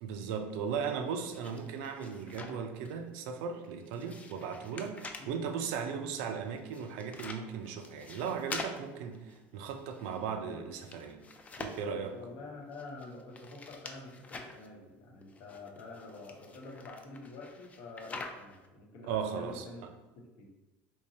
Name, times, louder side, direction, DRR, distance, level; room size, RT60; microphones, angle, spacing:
voice 1, 0.0-11.2 11.6-12.2 19.1-19.9, right 6 dB, 80° right, 0.4 m, -37 dB
sound 1, 0.9-2.9 3.3-5.4 6.4-10.3 10.6-12.1 12.7-14.7 15.2-18.7, left 3 dB, 25° left, 0.4 m, -46 dB
voice 2, 12.1-19.8 20.2-20.5, left 3 dB, 65° left, 0.9 m, -47 dB
3.6 x 2.9 x 2.7 m
supercardioid pair, 100°, 6 cm